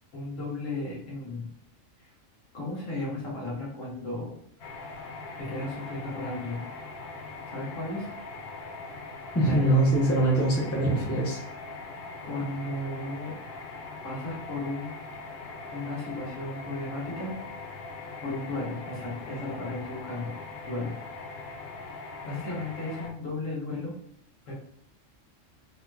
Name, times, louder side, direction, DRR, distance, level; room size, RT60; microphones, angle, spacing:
voice 1, 0.1-1.5 2.0-2.1 2.5-4.3 5.4-6.7 7.5-8.1 9.4-9.6 12.2-13.4 14.0-14.9 15.7-17.3 18.2-20.3 20.7-20.9 22.3-23.9 24.5-24.6, left 2 dB, 75° left, -5 dB, 1.5 m, -34 dB
sound 1, 4.6-23.1, left 3 dB, 60° left, 0.8 m, -41 dB
voice 2, 9.3-11.4, right 1 dB, 15° left, -3 dB, 0.6 m, -23 dB
3.6 x 2.8 x 2.3 m, 0.69 s
omnidirectional pair, 1.3 m